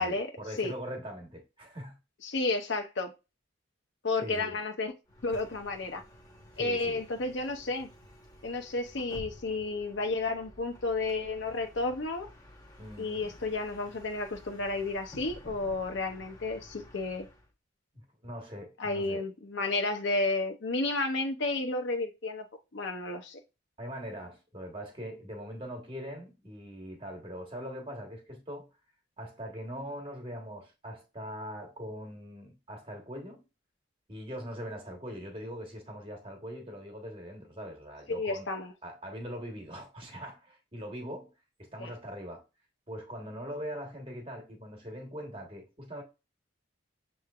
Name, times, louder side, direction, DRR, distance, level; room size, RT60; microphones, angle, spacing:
voice 1, 0.0-2.0 4.2-4.6 6.6-7.0 12.8-13.4 17.9-19.2 23.8-28.7 29.2-33.5 34.1-38.5 38.8-41.3 41.6-42.4 42.9-46.0, equal, 25° right, 1.3 m, -41 dB
voice 2, 2.2-3.1 4.0-4.9 5.2-6.0 6.6-7.9 8.4-12.3 13.0-17.3 18.8-22.4 22.7-23.4 38.1-38.7 41.8-41.9, left 3 dB, 65° left, 0.7 m, -32 dB
Bus, 5.1-17.5, left 1 dB, 20° left, 1.0 m, -52 dB
7.0 x 3.1 x 2.4 m
head